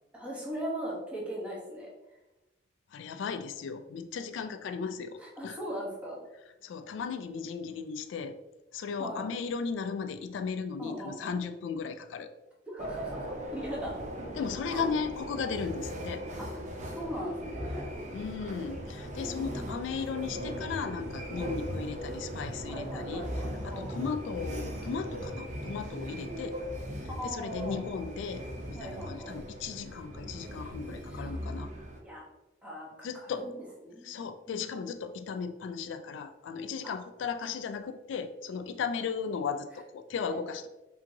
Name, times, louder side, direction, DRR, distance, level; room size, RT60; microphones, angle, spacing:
voice 1, 0.1-1.9 5.2-6.2 9.0-9.3 10.8-11.4 12.7-14.0 14.7-14.9 16.5-16.6 17.0-17.9 19.2-19.7 21.3-21.5 22.7-24.0 27.2-27.8 28.7-29.3 31.1-31.2 32.0-32.2 32.6-33.6 33.8-34.6 36.8-36.9 40.3-40.4, right 1 dB, 5° right, -5 dB, 1.0 m, -39 dB
voice 2, 2.9-5.6 6.6-8.4 8.7-12.3 14.4-16.2 18.1-23.3 23.6-26.6 27.2-31.7 33.0-33.5 34.0-40.7, left 5 dB, 80° left, 9 dB, 0.3 m, -36 dB
sound 1, 12.8-32.0, equal, 40° right, 0.6 m, -39 dB
5.1 x 2.8 x 2.7 m, 1.0 s
head